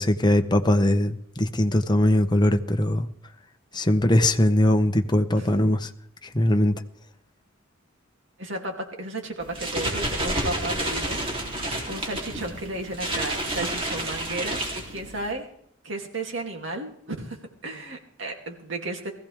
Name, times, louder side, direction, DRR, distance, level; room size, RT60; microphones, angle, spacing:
voice 1, 0.0-3.1 3.7-5.9 6.2-6.8, left 1 dB, 20° left, 7 dB, 0.9 m, -21 dB
voice 2, 8.4-11.2 11.5-15.5 15.8-17.4 17.6-19.1, right 2 dB, 70° right, 2 dB, 2.8 m, -34 dB
sound 1, 9.4-15.3, right 1 dB, 30° right, 3.3 m, -30 dB
19.5 x 15.0 x 3.5 m, 0.68 s
head